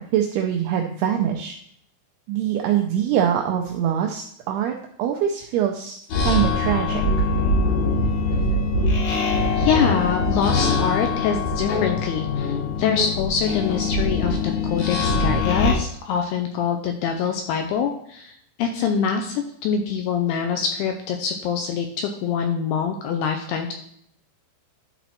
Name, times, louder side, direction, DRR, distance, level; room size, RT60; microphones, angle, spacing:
voice 1, 0.0-1.6 2.3-7.0, right 9 dB, 85° right, 3 dB, 2.3 m, -24 dB
sound 1, 6.1-15.7, left 3 dB, 55° left, 2.2 m, -22 dB
voice 2, 9.1-23.7, left 7 dB, 80° left, 4 dB, 2.4 m, -25 dB
11.5 x 4.2 x 4.2 m, 0.66 s
omnidirectional pair, 5.3 m